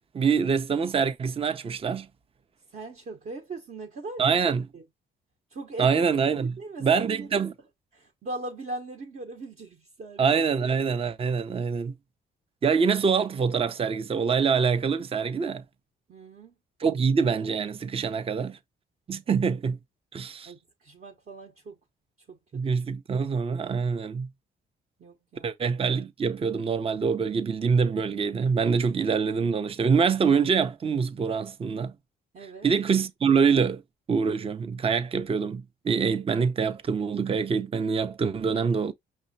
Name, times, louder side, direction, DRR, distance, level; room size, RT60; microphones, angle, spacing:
voice 1, 0.1-2.1 4.2-4.7 5.8-6.5 6.8-7.5 10.2-11.9 12.6-15.6 16.8-18.6 19.1-19.8 20.1-20.5 22.5-24.3 25.4-31.9 32.4-33.8 34.1-38.9, right 5 dB, 30° right, 0.5 m, -25 dB
voice 2, 2.7-4.3 4.7-4.8 5.5-5.9 6.4-7.3 7.9-10.2 16.1-16.5 20.5-21.8 22.5-22.8 25.0-25.5 32.3-32.7 38.2-38.8, right 2 dB, 45° right, 1.0 m, -39 dB
5.5 x 3.2 x 2.7 m
cardioid pair, 90°, 20 cm